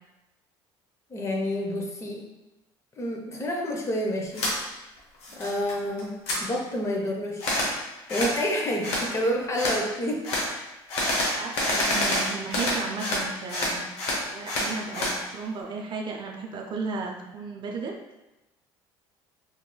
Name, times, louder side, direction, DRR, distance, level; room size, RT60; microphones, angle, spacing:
voice 1, 1.1-2.2 3.0-4.5 5.3-6.1 6.4-7.5 8.1-10.3, equal, 25° left, 0 dB, 0.7 m, -28 dB
Airsoft Gun, 4.3-4.5 5.0-5.7 6.0-6.4 7.4-7.7 8.1-8.4 8.8-9.1 9.5-9.8 10.2-10.5 10.9-13.2 13.5-15.2, left 1 dB, 70° left, 0.9 m, -27 dB
voice 2, 5.3-5.6 9.4-9.5 11.3-13.9 14.3-18.0, right 4 dB, 45° right, 1 dB, 0.5 m, -34 dB
3.1 x 3.0 x 2.2 m, 0.99 s
supercardioid pair, 85°, 11 cm